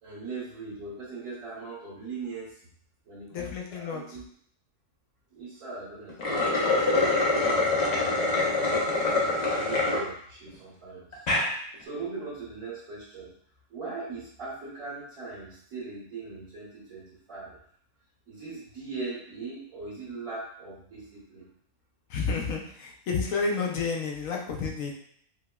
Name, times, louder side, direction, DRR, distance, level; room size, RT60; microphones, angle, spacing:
voice 1, 0.0-2.7 3.0-4.3 5.3-9.1 9.5-11.2 11.8-13.3 13.7-17.5 18.3-21.4, right 3 dB, 60° right, -11 dB, 1.7 m, -40 dB
voice 2, 3.3-4.2 22.1-24.9, left 4 dB, 70° left, 1 dB, 0.9 m, -30 dB
sound 1, 6.1-10.0 10.5-10.6 11.1-11.5, left 2 dB, 50° left, 0.5 m, -25 dB
4.6 x 2.1 x 2.2 m, 0.64 s
omnidirectional pair, 1.7 m